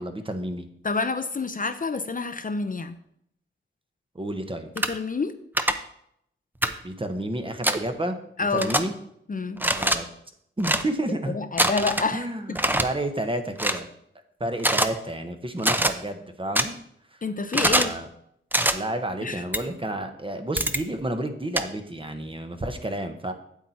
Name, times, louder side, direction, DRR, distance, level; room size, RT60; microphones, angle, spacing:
voice 1, 0.0-0.7 4.1-4.7 6.8-8.1 8.5-8.9 9.7-10.1 10.6-11.4 12.1-13.9 14.4-16.7 17.1-17.2 17.6-18.1 18.7-23.3, right 1 dB, 25° right, 6 dB, 1.1 m, -30 dB
voice 2, 0.8-3.0 4.8-5.3 8.4-8.7 9.3-9.6 11.3-12.3 17.2-17.9 19.2-19.4, left 4 dB, 40° left, 9 dB, 0.6 m, -28 dB
sound 1, 4.8-4.9 5.6-5.7 6.6-6.7 7.6-7.8 8.6-8.8 9.6-10.0 10.6-10.8 11.6-12.1 12.6-12.8 13.6-13.8 14.6-14.9 15.6-15.9 16.6-16.7 17.5-17.9 18.5-18.7 19.5-19.6 20.6-20.8 21.6-21.7, right 1 dB, 10° right, 0.6 m, -22 dB
8.4 x 7.9 x 4.3 m, 0.72 s
wide cardioid pair, 85°, 21 cm